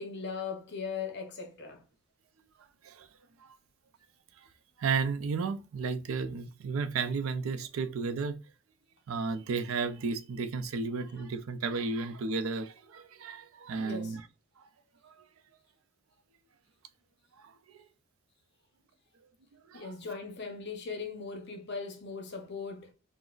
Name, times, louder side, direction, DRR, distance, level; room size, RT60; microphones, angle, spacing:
voice 1, 0.0-1.8 13.8-14.2 19.7-22.9, left 5 dB, 55° left, 0.8 m, -39 dB
voice 2, 4.8-8.4 9.1-14.2 17.7-17.8 19.7-19.9, right 4 dB, 80° right, 0.4 m, -33 dB
3.8 x 2.0 x 2.4 m
head